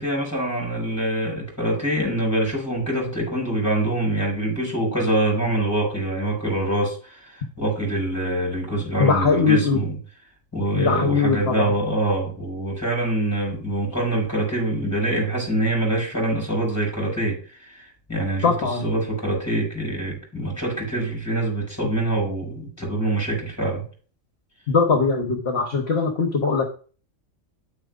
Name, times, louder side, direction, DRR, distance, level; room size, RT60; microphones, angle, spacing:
voice 1, 0.0-10.0 10.5-17.8 18.1-23.8, right 1 dB, 10° left, 4.9 m, -25 dB
voice 2, 9.0-9.8 10.7-11.7 18.4-18.8 24.7-26.7, left 5 dB, 55° left, 1.3 m, -21 dB
9.3 x 8.8 x 2.5 m
omnidirectional pair, 1.4 m